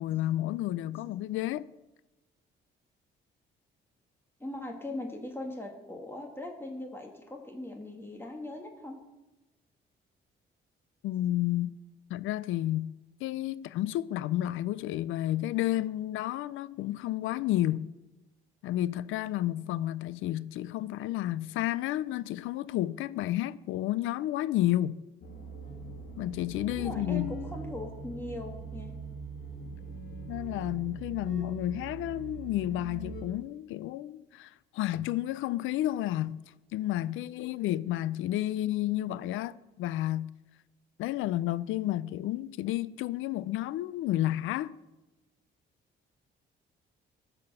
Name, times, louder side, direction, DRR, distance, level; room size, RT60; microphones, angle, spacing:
voice 1, 0.0-1.7 11.0-11.8 12.1-12.9 13.2-17.9 18.6-25.0 26.2-27.3 30.3-36.4 36.7-40.3 41.0-44.8, left 14 dB, 85° left, 0.4 m, -31 dB
voice 2, 4.4-9.0 26.7-29.0, left 1 dB, 10° left, 1.5 m, -40 dB
sound 1, 25.2-33.2, right 3 dB, 50° left, 2.1 m, -41 dB
12.5 x 4.3 x 6.7 m
cardioid pair, 90°, 20 cm